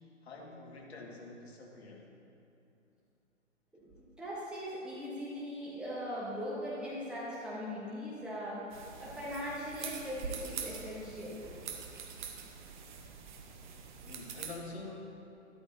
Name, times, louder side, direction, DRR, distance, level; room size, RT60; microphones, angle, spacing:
voice 1, 0.2-2.0 14.0-15.2, left 3 dB, 50° left, -1 dB, 2.1 m, -46 dB
voice 2, 4.2-8.7 9.0-11.5, equal, ahead, -9 dB, 1.1 m, -40 dB
sound 1, 8.7-14.5, right 6 dB, 35° right, 1.0 m, -44 dB
13.5 x 12.5 x 2.8 m, 2.8 s
figure-of-eight pair, 130°, 39 cm